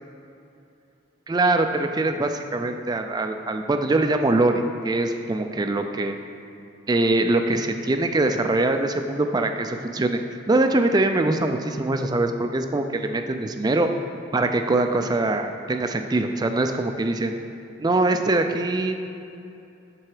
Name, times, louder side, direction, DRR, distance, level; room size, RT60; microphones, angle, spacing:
voice 1, 1.3-6.2 6.9-10.2 10.5-13.9 14.3-17.3 17.8-18.9, right 2 dB, 20° right, 5 dB, 0.3 m, -23 dB
7.5 x 6.9 x 4.8 m, 2.7 s
head